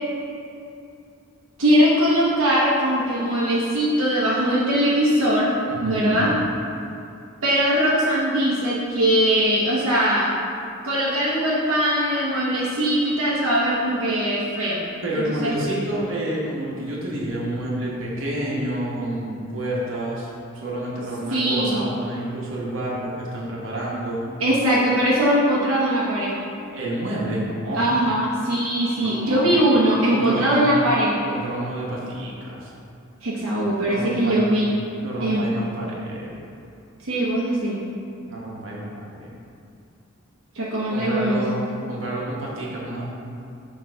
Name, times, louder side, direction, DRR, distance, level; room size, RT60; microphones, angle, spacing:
voice 1, 1.6-5.5 5.8-6.3 7.4-10.3 10.8-14.8 15.1-15.6 21.3-21.8 24.4-26.4 27.8-31.2 33.2-34.7 35.2-35.4 37.0-37.8 40.5-41.4, equal, 85° right, -7 dB, 0.9 m, -21 dB
voice 2, 5.7-6.3 15.0-20.3 20.5-24.2 26.7-27.9 29.0-29.5 30.1-30.7 31.3-32.7 33.9-34.6 35.0-36.3 38.2-39.3 40.9-41.5 41.9-43.1, right 1 dB, 65° right, -4 dB, 1.2 m, -29 dB
6.3 x 3.0 x 5.6 m, 2.6 s
head